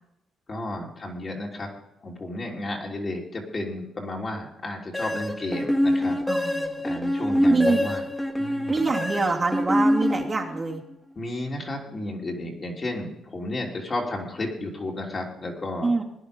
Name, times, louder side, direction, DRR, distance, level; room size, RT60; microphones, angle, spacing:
voice 1, 0.5-1.7 2.0-6.2 6.8-8.0 8.3-8.9 11.1-15.9, left 1 dB, 35° left, -1 dB, 3.3 m, -32 dB
sound 1, 4.9-10.8, equal, 10° left, 1.7 m, -25 dB
voice 2, 6.3-6.7 7.5-7.8 8.7-10.8 15.8-16.0, right 3 dB, 30° right, -2 dB, 2.4 m, -25 dB
17.5 x 10.0 x 5.3 m, 0.84 s
cardioid pair, 90°, 0 cm